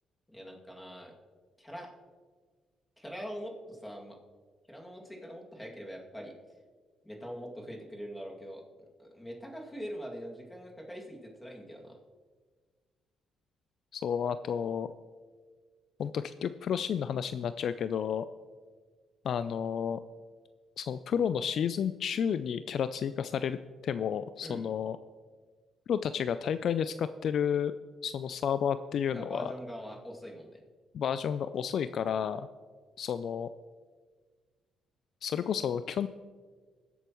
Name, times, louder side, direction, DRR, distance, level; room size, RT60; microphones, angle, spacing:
voice 1, 0.3-1.1 1.6-1.9 3.0-4.2 4.7-6.3 7.0-8.6 9.0-12.0 24.4-24.6 29.1-30.6, equal, 10° left, -1 dB, 2.3 m, -43 dB
voice 2, 13.9-14.9 16.0-18.3 19.2-20.0 20.8-23.6 23.8-25.0 25.9-27.7 28.0-29.5 30.9-32.5 33.0-33.5 35.2-36.1, left 8 dB, 65° left, 12 dB, 0.3 m, -31 dB
20.5 x 8.1 x 3.0 m, 1.5 s
cardioid pair, 90°, 0 cm